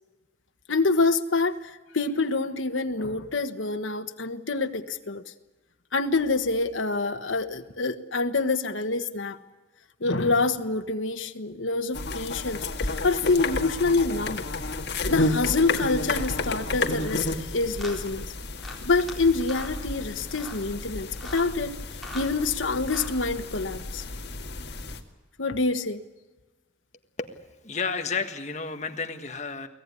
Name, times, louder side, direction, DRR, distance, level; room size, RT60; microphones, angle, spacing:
voice 1, 0.7-5.2 5.9-9.4 10.0-14.4 15.1-18.3 18.8-21.8 22.1-24.0 25.4-26.0, left 3 dB, 85° left, 7 dB, 1.3 m, -26 dB
sound 1, 11.9-25.0, left 2 dB, 55° left, 1.9 m, -31 dB
sound 2, 17.0-17.2 17.8-18.0 18.6-19.1 19.4-19.8 20.3-20.6 21.1-21.5 21.9-22.3 22.8-23.2, left 2 dB, ahead, 4.0 m, -40 dB
voice 2, 27.2-29.7, left 5 dB, 35° left, 6 dB, 1.6 m, -32 dB
23.5 x 17.0 x 9.8 m, 1.2 s
head